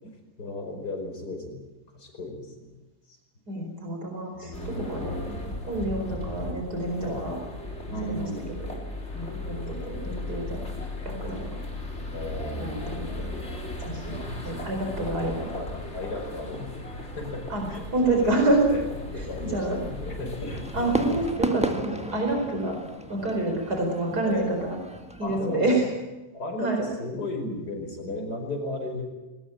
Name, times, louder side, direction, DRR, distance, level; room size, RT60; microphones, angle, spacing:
voice 1, 0.0-1.6 1.9-2.7 3.1-3.2 4.3-5.3 7.0-7.3 7.9-8.6 9.6-10.4 12.1-12.8 14.2-14.8 15.5-17.8 18.1-18.3 18.7-18.9 19.1-20.7 21.6-22.1 24.2-24.6 25.2-25.7 26.3-29.0, left 2 dB, 85° left, 3 dB, 5.6 m, -35 dB
voice 2, 3.5-5.4 5.7-7.4 8.0-8.2 8.7-8.8 9.1-10.6 11.1-11.5 12.6-13.3 13.9-15.5 17.5-17.7 17.9-18.7 19.4-19.9 20.7-22.8 23.1-24.8 25.2-25.9 26.6-26.8, right 2 dB, 75° right, 2 dB, 5.2 m, -28 dB
sound 1, 4.5-21.3, left 1 dB, 40° left, 4.0 m, -36 dB
Fireworks, 20.5-25.5, equal, 5° right, 1.6 m, -34 dB
20.0 x 19.5 x 8.8 m, 1.1 s
omnidirectional pair, 1.7 m